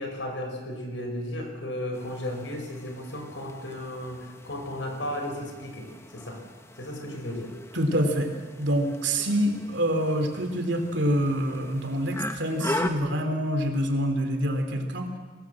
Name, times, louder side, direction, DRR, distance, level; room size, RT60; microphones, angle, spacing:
voice 1, 0.0-6.4 6.8-7.5, left 1 dB, 80° left, 4 dB, 5.2 m, -34 dB
sound 1, 1.9-12.9, left 1 dB, 15° left, 1.2 m, -39 dB
voice 2, 7.7-8.3 8.6-15.1, equal, 70° right, 5 dB, 3.2 m, -26 dB
24.5 x 19.0 x 7.7 m, 1.5 s
head